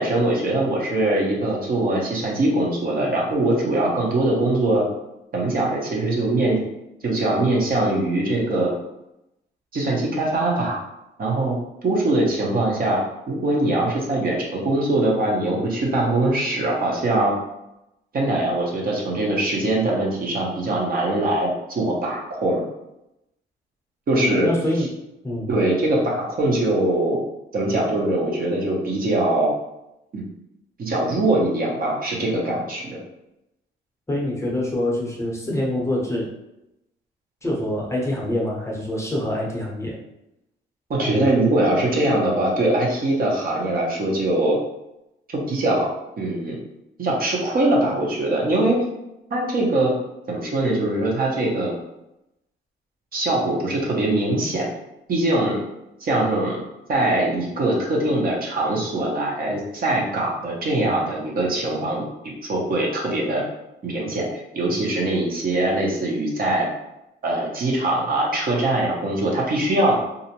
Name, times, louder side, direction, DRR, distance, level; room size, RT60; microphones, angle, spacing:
voice 1, 0.0-4.9 5.3-6.6 7.0-8.7 9.7-10.8 11.2-11.6 11.8-13.0 13.3-17.4 18.1-22.6 24.1-24.5 25.5-27.2 27.5-29.5 30.1-30.2 30.8-33.0 40.9-44.6 45.3-45.9 46.2-46.6 47.0-48.8 49.3-49.9 50.3-51.8 53.1-54.7 55.1-55.6 56.0-56.6 56.9-62.0 62.4-63.4 63.8-64.3 64.5-66.7 67.2-70.0, right 2 dB, 45° right, -2 dB, 0.7 m, -22 dB
voice 2, 24.1-24.9 25.2-25.5 34.1-36.3 37.4-39.9, left 1 dB, 15° left, -3 dB, 0.7 m, -25 dB
2.4 x 2.0 x 2.8 m, 0.88 s
cardioid pair, 90°, 20 cm